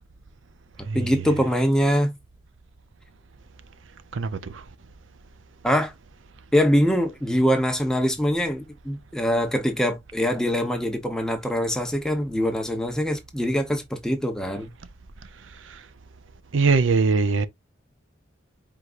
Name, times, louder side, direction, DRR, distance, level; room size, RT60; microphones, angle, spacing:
voice 1, 0.9-2.2 5.6-5.9 6.5-14.7, equal, 5° left, 1.0 m, -23 dB
voice 2, 4.1-4.6 15.6-15.8 16.5-17.5, right 4 dB, 85° right, 0.6 m, -22 dB
4.7 x 3.7 x 2.5 m
head